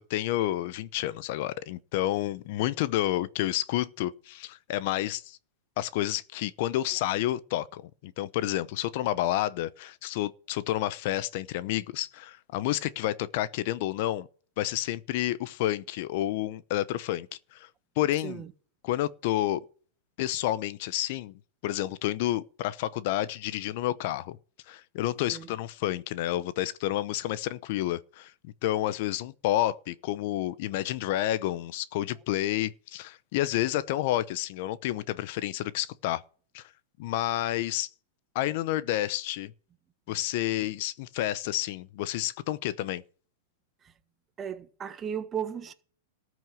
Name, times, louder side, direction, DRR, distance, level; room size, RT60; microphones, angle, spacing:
voice 1, 0.0-5.4 5.8-14.3 14.6-17.3 17.5-17.7 18.0-18.4 18.8-19.6 20.2-21.3 21.6-24.4 24.7-36.2 36.5-36.7 37.0-37.9 38.3-39.5 40.1-43.0, left 14 dB, 55° left, 0.8 m, -30 dB
voice 2, 44.4-45.7, right 8 dB, 20° right, 1.4 m, -36 dB
14.0 x 6.2 x 7.6 m
hypercardioid pair, 135°, 0 cm